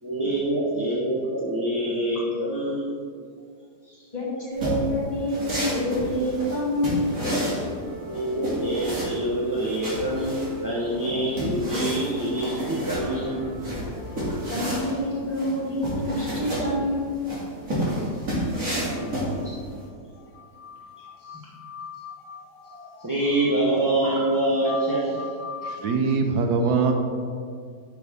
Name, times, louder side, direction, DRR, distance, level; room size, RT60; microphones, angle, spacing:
voice 1, 0.0-2.9 3.8-4.0 8.1-13.5 13.8-14.0 19.2-20.0 21.3-21.4 22.3-25.4, right 1 dB, 15° right, -7 dB, 0.8 m, -26 dB
voice 2, 4.1-7.1 14.5-17.2, left 1 dB, 25° left, -7 dB, 2.3 m, -27 dB
sound 1, 4.5-19.8, equal, 50° right, 2.7 m, -30 dB
sound 2, 7.4-16.9 17.8-18.9 19.1-19.4 20.3-20.4, equal, 30° right, 1.5 m, -42 dB
sound 3, 18.6-19.6 19.8-19.9 20.2-26.2, left 6 dB, 90° left, 1.4 m, -41 dB
voice 3, 25.6-26.9, right 4 dB, 75° right, 4 dB, 1.2 m, -23 dB
10.5 x 6.0 x 3.5 m, 2.2 s
omnidirectional pair, 1.8 m